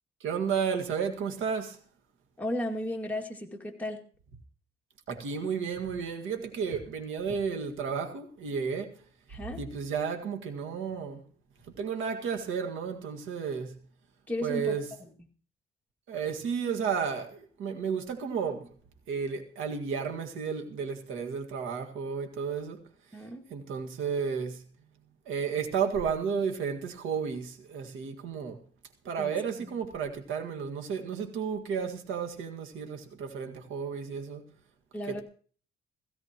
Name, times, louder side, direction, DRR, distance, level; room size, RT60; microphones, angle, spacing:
voice 1, 0.2-1.8 5.1-9.0 9.6-11.2 11.8-13.8 14.4-14.8 16.1-18.7 19.1-22.8 23.5-24.6 25.3-28.6 29.1-34.4 35.1-35.2, right 6 dB, 85° right, 1.9 m, -32 dB
voice 2, 2.4-4.0 9.3-9.6 14.3-14.8 23.1-23.4 29.2-29.3 29.6-29.8 34.9-35.2, left 1 dB, 10° left, 2.2 m, -34 dB
17.0 x 15.5 x 3.0 m
cardioid pair, 90°, 20 cm